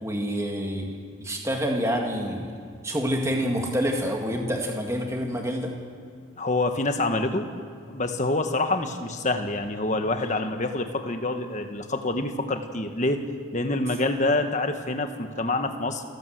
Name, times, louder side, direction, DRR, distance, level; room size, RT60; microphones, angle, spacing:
voice 1, 0.0-2.6 2.8-5.8, equal, 15° right, 1 dB, 1.9 m, -27 dB
voice 2, 6.4-7.5 7.9-13.2 13.5-16.0, left 2 dB, 35° left, 6 dB, 1.4 m, -26 dB
29.0 x 12.5 x 7.9 m, 2.3 s
head